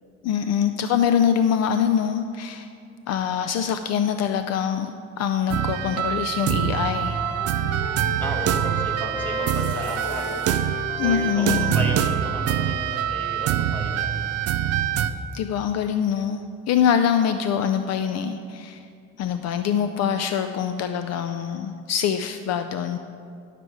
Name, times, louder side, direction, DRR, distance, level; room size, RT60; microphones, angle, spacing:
voice 1, 0.2-2.7 3.1-7.2 11.0-11.8 15.3-18.8 19.2-23.0, left 8 dB, 60° left, 8 dB, 0.5 m, -24 dB
sound 1, 5.5-15.1, right 10 dB, 55° right, 0.5 m, -25 dB
Wind instrument woodwind instrument, 5.7-6.1 6.4-12.9, equal, 25° left, 1.5 m, -35 dB
voice 2, 8.2-10.7 11.0-14.0, equal, 5° left, -1 dB, 1.8 m, -34 dB
11.0 x 6.7 x 4.7 m, 2.4 s
cardioid pair, 110°, 30 cm